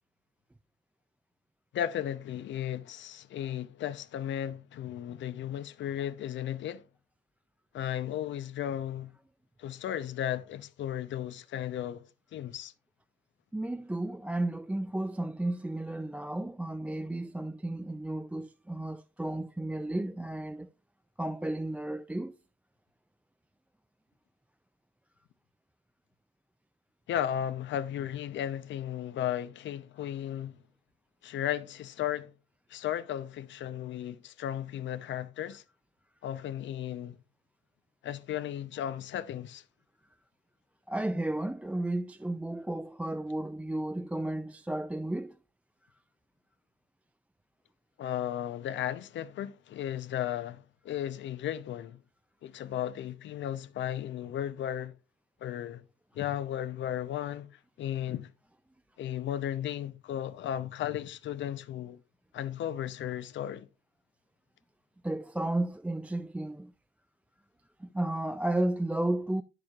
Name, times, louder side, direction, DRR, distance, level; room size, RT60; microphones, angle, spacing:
voice 1, 1.7-6.8 7.7-9.1 9.6-12.1 12.3-12.7 27.1-30.6 31.2-32.3 32.7-35.6 36.2-37.2 38.0-39.6 48.0-52.0 52.4-54.9 55.4-55.8 56.1-57.5 57.8-58.3 59.0-62.0 62.3-63.7, left 11 dB, 70° left, 0.7 m, -35 dB
voice 2, 13.5-20.7 21.2-22.3 40.9-45.4 65.0-66.7 67.8-69.4, right 1 dB, 5° right, 0.4 m, -33 dB
9.7 x 6.8 x 2.4 m
cardioid pair, 90°, 20 cm